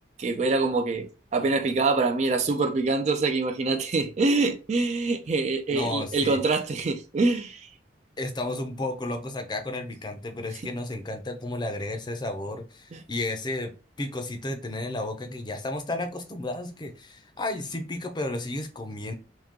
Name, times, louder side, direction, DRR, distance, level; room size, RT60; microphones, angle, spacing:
voice 1, 0.2-7.7 12.9-13.0, right 3 dB, 35° right, 0.3 m, -25 dB
voice 2, 5.7-6.4 8.2-13.7 14.0-19.1, left 2 dB, 25° left, 0.5 m, -32 dB
3.6 x 2.8 x 2.8 m
head